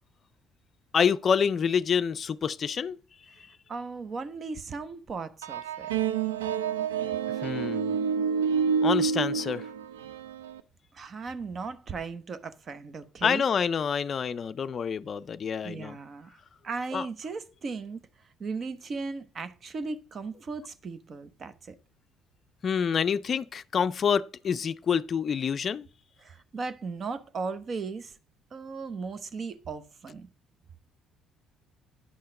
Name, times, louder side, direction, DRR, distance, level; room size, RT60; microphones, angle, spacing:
voice 1, 0.9-3.0 7.4-8.0 8.8-9.6 13.2-16.0 16.9-17.1 22.6-25.9, left 7 dB, 45° left, 0.4 m, -27 dB
voice 2, 3.7-5.9 10.9-13.5 15.6-18.0 18.4-21.8 26.2-28.1 28.5-30.3, right 4 dB, 45° right, 0.8 m, -37 dB
sound 1, 5.4-10.6, right 6 dB, 90° right, 0.3 m, -28 dB
10.0 x 5.6 x 3.8 m
hypercardioid pair, 55°, 0 cm